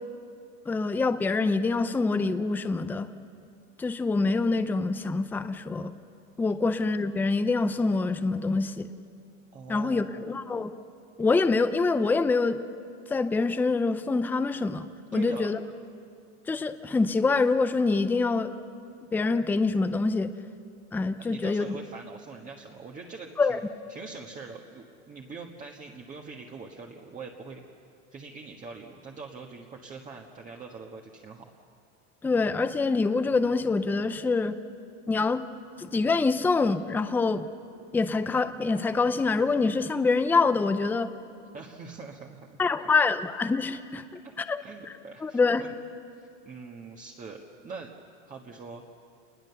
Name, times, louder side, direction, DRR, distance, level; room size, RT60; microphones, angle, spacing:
voice 1, 0.7-3.1 3.8-5.9 6.4-8.9 9.7-10.7 11.2-12.6 13.1-14.9 15.1-15.6 16.5-18.5 19.1-20.3 20.9-21.6 23.4-23.6 32.2-34.6 35.1-35.4 35.8-37.5 37.9-41.1 42.6-44.0 44.4-44.6 44.9-45.0 45.2-45.6, left 3 dB, 5° left, 10 dB, 0.5 m, -25 dB
voice 2, 9.5-10.2 15.1-15.5 21.2-23.6 23.9-27.6 28.1-31.5 41.5-42.6 44.6-45.7 46.1-47.9 48.2-48.8, right 4 dB, 20° right, 0 dB, 1.4 m, -43 dB
28.0 x 20.5 x 7.0 m, 2.4 s
supercardioid pair, 140°, 36 cm